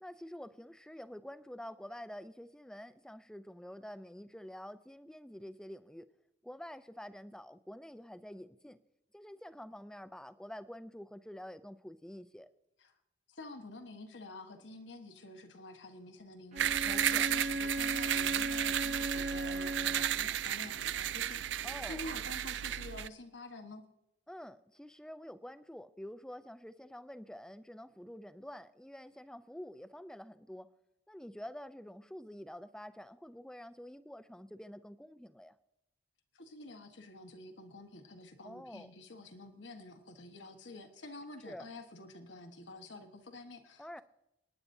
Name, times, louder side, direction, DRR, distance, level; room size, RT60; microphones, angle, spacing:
voice 1, 0.0-6.1 6.4-8.8 9.1-12.5 16.8-17.5 21.6-22.0 24.3-30.7 31.1-35.6 38.4-38.9 41.4-41.7 43.8-44.0, equal, 5° left, 12 dB, 0.4 m, -48 dB
voice 2, 13.3-23.8 36.3-44.0, left 2 dB, 85° left, 5 dB, 1.4 m, -49 dB
Bowed string instrument, 16.5-20.3, right 1 dB, 40° right, 1.0 m, -37 dB
sound 1, 16.6-23.1, right 11 dB, 75° right, 0.4 m, -34 dB
28.5 x 9.8 x 2.7 m, 0.88 s
head